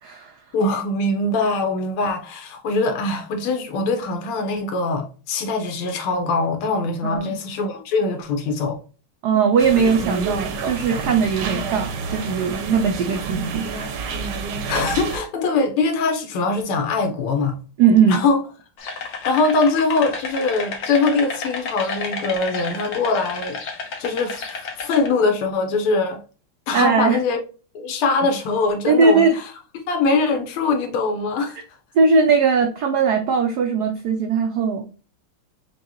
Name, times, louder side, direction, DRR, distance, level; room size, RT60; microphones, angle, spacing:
voice 1, 0.0-0.4 7.0-7.4 9.2-14.2 17.8-18.2 26.7-27.2 28.8-29.4 31.9-34.8, right 5 dB, 85° right, 0.8 m, -19 dB
voice 2, 0.5-8.8 14.7-17.6 18.1-18.4 19.3-23.6 24.0-24.4 24.8-26.2 26.7-27.4 27.7-29.4 29.9-31.6, left 3 dB, 85° left, 1.7 m, -22 dB
sound 1, 9.6-15.2, right 4 dB, 65° right, 1.2 m, -28 dB
sound 2, 18.8-25.1, left 4 dB, 55° left, 1.1 m, -31 dB
6.3 x 2.3 x 2.9 m
omnidirectional pair, 2.4 m